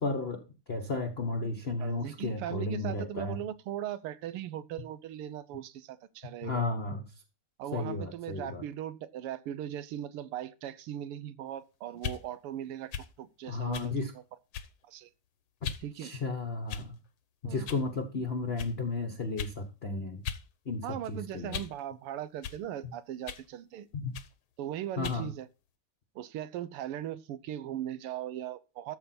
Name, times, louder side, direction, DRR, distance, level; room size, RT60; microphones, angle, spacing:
voice 1, 0.0-3.4 6.4-7.0 7.7-8.6 13.4-14.1 15.6-15.7 16.0-17.0 17.4-20.2 20.6-21.6 23.9-24.1 25.0-25.3, left 3 dB, 35° left, 1.1 m, -33 dB
voice 2, 1.8-6.6 7.6-14.0 14.9-15.1 15.8-16.1 17.4-17.7 20.8-23.9 24.6-25.5 26.1-29.0, right 11 dB, 85° right, 1.7 m, -39 dB
sound 1, 11.9-12.2 12.9-13.1 13.7-13.9 14.5-14.8 15.6-15.9 16.7-17.1 17.7-17.9 18.6-18.7 19.4-19.6 20.2-20.5 20.8-21.8 22.4-22.6 23.3-23.5 24.1-24.3 25.0-25.2, left 8 dB, 70° left, 1.8 m, -39 dB
13.5 x 6.9 x 4.3 m
omnidirectional pair, 2.4 m